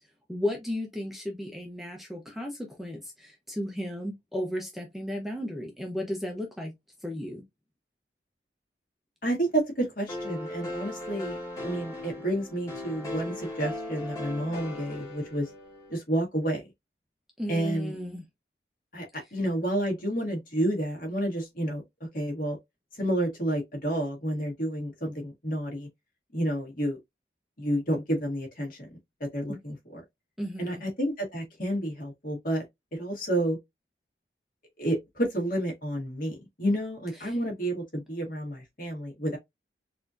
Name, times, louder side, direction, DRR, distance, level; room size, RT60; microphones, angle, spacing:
voice 1, 0.3-6.7 7.0-7.4 17.4-18.2 29.5-29.6 30.4-30.8 37.2-37.4, left 1 dB, ahead, 0.7 m, -34 dB
voice 2, 9.2-15.5 15.9-16.6 17.5-18.0 18.9-19.1 19.3-21.8 22.1-22.6 23.0-25.9 26.3-27.0 27.6-28.9 29.3-30.0 30.6-32.6 32.9-33.6 34.8-39.4, right 1 dB, 50° left, 1.8 m, -30 dB
sound 1, 10.1-16.0, left 1 dB, 20° left, 1.5 m, -38 dB
4.1 x 2.8 x 2.5 m
head